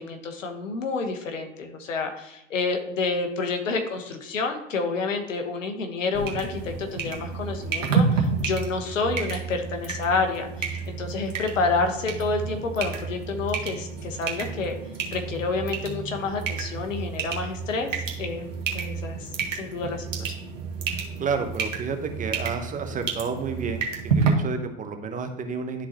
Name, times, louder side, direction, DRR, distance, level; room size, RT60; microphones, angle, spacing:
voice 1, 0.0-14.8 15.1-20.3, left 4 dB, 80° left, 5 dB, 1.3 m, -29 dB
dripping tapwater, 6.1-24.3, right 5 dB, 85° right, 1.6 m, -30 dB
voice 2, 20.9-25.9, right 5 dB, 20° right, 6 dB, 0.8 m, -31 dB
12.0 x 4.0 x 2.9 m, 0.84 s
hypercardioid pair, 105°, 38 cm